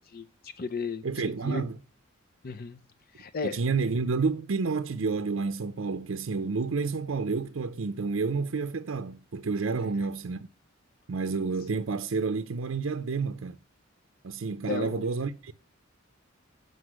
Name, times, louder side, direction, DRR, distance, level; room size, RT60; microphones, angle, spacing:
voice 1, 0.0-1.0 1.4-1.6 2.4-2.8 3.1-3.6 9.8-9.9 14.7-15.0, left 4 dB, 50° left, 0.5 m, -34 dB
voice 2, 1.0-1.8 3.4-10.5 11.1-13.6 14.2-15.5, right 4 dB, 70° right, 0.5 m, -30 dB
8.0 x 5.3 x 7.3 m
head